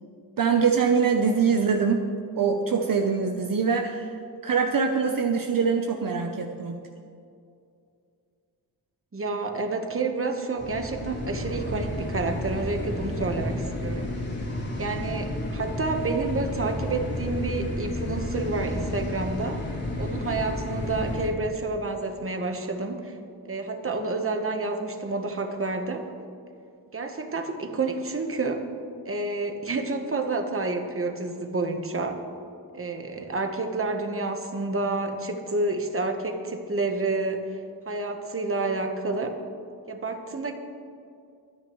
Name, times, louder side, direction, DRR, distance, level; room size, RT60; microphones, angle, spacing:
voice 1, 0.4-2.1 2.4-4.1 4.4-6.8, right 5 dB, 60° right, 4 dB, 0.8 m, -23 dB
voice 2, 9.1-14.2 14.8-19.6 20.0-23.2 23.4-26.0 26.9-28.6 29.0-32.2 32.7-37.5 37.9-39.4 39.9-40.5, right 3 dB, 35° right, 5 dB, 1.2 m, -29 dB
sound 1, 10.6-21.3, left 1 dB, 45° left, 2.9 m, -31 dB
24.0 x 9.6 x 3.1 m, 2.4 s
wide cardioid pair, 135°, 39 cm